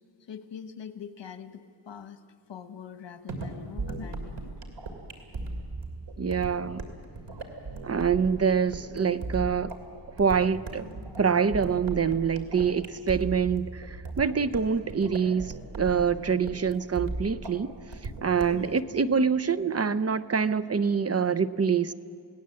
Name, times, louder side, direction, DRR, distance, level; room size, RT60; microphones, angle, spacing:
voice 1, 0.2-2.2 2.5-4.5 16.1-16.4 18.5-18.8, left 7 dB, 85° left, 10 dB, 1.3 m, -43 dB
sound 1, 3.3-18.7, right 3 dB, 85° right, 2.8 m, -37 dB
voice 2, 6.2-6.8 7.8-9.7 10.2-10.8 11.2-17.7 18.2-21.9, right 6 dB, 35° right, 13 dB, 0.6 m, -25 dB
28.5 x 18.0 x 7.7 m, 2.5 s
wide cardioid pair, 100°, 42 cm